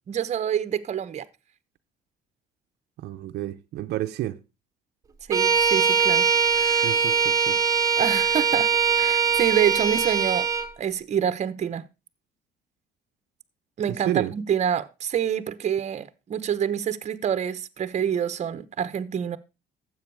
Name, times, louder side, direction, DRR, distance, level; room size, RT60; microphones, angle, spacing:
voice 1, 0.1-1.3 5.3-6.2 6.5-6.9 8.0-8.7 9.0-10.5 10.8-11.8 13.8-19.4, right 8 dB, 40° right, 1.0 m, -27 dB
voice 2, 3.0-4.4 6.8-7.6 14.1-14.3, right 14 dB, 80° right, 0.8 m, -30 dB
Bowed string instrument, 5.3-10.7, right 7 dB, 20° right, 1.5 m, -22 dB
12.5 x 7.9 x 4.8 m
cardioid pair, 110°, 17 cm